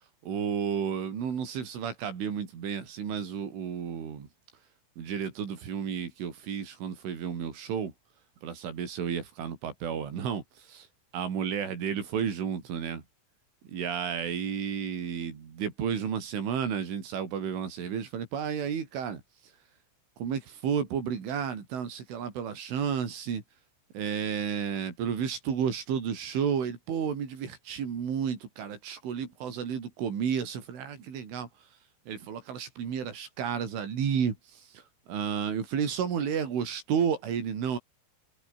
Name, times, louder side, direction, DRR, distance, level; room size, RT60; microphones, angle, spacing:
voice 1, 0.2-4.3 5.0-7.9 8.4-10.4 10.7-10.9 11.1-13.0 13.7-19.2 20.2-23.4 24.0-31.5 32.1-34.8 35.1-37.8, right 7 dB, 75° right, 7.0 m, -32 dB
omnidirectional pair, 5.7 m